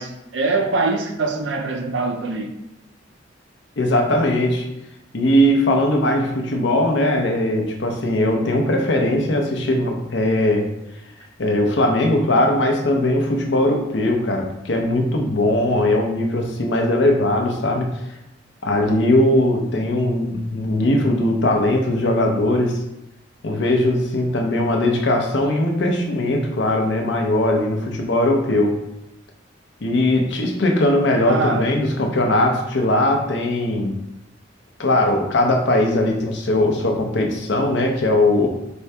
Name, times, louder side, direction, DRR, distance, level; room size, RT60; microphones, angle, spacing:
voice 1, 0.0-2.5 31.2-31.7, right 3 dB, 70° right, 0.5 m, -23 dB
voice 2, 3.8-4.7 5.1-10.7 11.4-17.9 18.6-22.8 23.4-28.8 29.8-34.0 34.8-38.5, left 1 dB, 65° left, 0.7 m, -19 dB
4.4 x 2.7 x 3.3 m
head